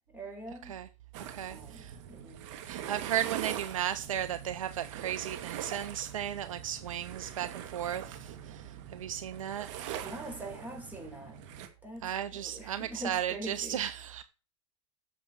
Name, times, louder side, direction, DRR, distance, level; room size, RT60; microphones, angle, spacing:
voice 1, 0.1-0.8 1.5-2.4 9.9-11.4 11.8-13.8, right 1 dB, 10° right, 5.2 m, -44 dB
sound 1, 1.1-11.7, right 10 dB, 65° right, 2.4 m, -43 dB
voice 2, 1.3-2.0 2.7-9.7 12.0-14.2, right 10 dB, 90° right, 0.8 m, -35 dB
9.4 x 6.8 x 7.9 m
hypercardioid pair, 105°, 17 cm